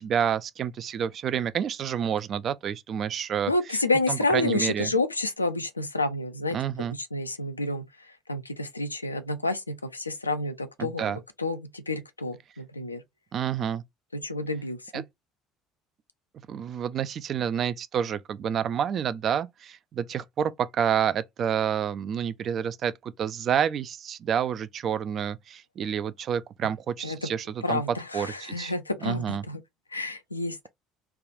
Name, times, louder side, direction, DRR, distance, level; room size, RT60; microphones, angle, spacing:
voice 1, 0.0-3.5 4.1-4.9 6.5-7.0 10.8-11.2 13.3-13.8 14.9-15.0 16.5-28.7 29.0-29.4, right 8 dB, 40° right, 0.3 m, -29 dB
voice 2, 3.5-11.0 11.4-13.0 14.1-15.0 27.0-27.3 27.6-29.6 29.9-30.7, left 2 dB, 85° left, 0.4 m, -29 dB
3.4 x 2.3 x 2.5 m
figure-of-eight pair, 60°, 0 cm